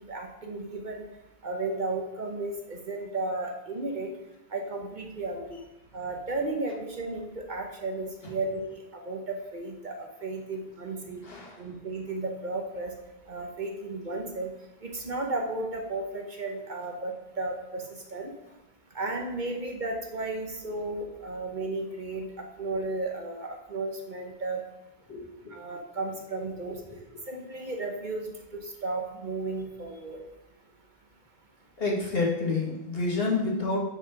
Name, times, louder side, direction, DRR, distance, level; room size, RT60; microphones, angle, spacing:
voice 1, 0.1-1.0 1.4-4.1 4.5-5.6 5.9-8.8 9.1-11.2 11.6-12.9 13.3-14.5 14.8-18.3 18.9-24.6 25.5-26.8 27.3-28.3 28.6-30.2, right 2 dB, 50° right, 2 dB, 0.9 m, -34 dB
voice 2, 11.2-11.6 25.1-25.5 26.7-27.2 31.8-33.8, left 3 dB, 60° left, -2 dB, 1.8 m, -30 dB
5.7 x 5.1 x 5.5 m, 0.97 s
omnidirectional pair, 1.1 m